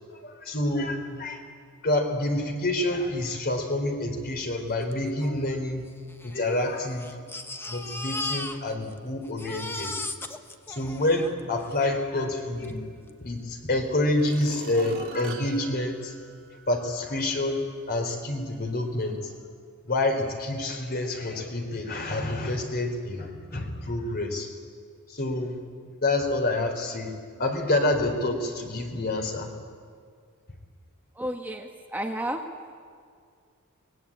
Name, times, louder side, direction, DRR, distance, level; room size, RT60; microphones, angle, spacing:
voice 1, 0.0-1.4 1.8-5.9 6.2-7.2 7.7-9.9 10.7-16.1 16.7-19.3 19.8-24.5 25.1-25.6 26.0-27.1 27.4-29.5, left 2 dB, 45° left, 4 dB, 3.5 m, -28 dB
Crying sobbing, 4.9-5.0 5.2-5.3 6.1-9.0 9.2-11.8 12.6-12.7 13.1-13.2, left 2 dB, 10° left, 1.1 m, -36 dB
sound 1, 13.4-13.5 14.1-16.9 17.4-17.5, right 3 dB, 60° right, 2.7 m, -42 dB
voice 2, 31.1-32.4, right 1 dB, 10° right, 2 dB, 1.2 m, -32 dB
23.0 x 20.5 x 8.7 m, 2.2 s
head